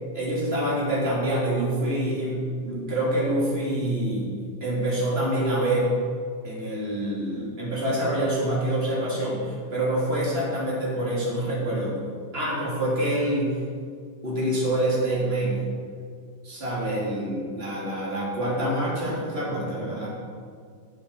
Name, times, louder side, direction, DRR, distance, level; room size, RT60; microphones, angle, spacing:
voice 1, 0.1-4.3 4.6-5.9 6.4-12.0 12.3-13.6 14.2-15.6 16.4-20.1, right 1 dB, 25° right, -6 dB, 4.0 m, -26 dB
17.5 x 8.0 x 5.0 m, 2.1 s
omnidirectional pair, 2.3 m